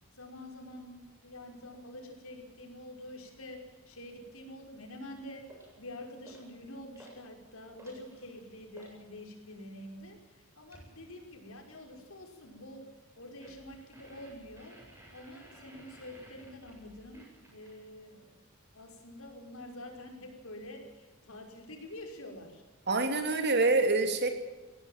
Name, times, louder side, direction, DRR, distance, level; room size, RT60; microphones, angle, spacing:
voice 1, 0.1-12.9 13.2-14.8 15.1-18.4 18.7-22.6, left 1 dB, 80° left, 3 dB, 5.5 m, -47 dB
sound 1, 5.5-5.8 6.2-6.6 6.9-7.2 7.6-9.0 10.7-11.0 13.4-17.9, right 1 dB, 15° right, 7.6 m, -55 dB
voice 2, 22.9-24.3, right 3 dB, 55° right, 6 dB, 3.1 m, -26 dB
21.5 x 17.0 x 7.4 m, 1.2 s
head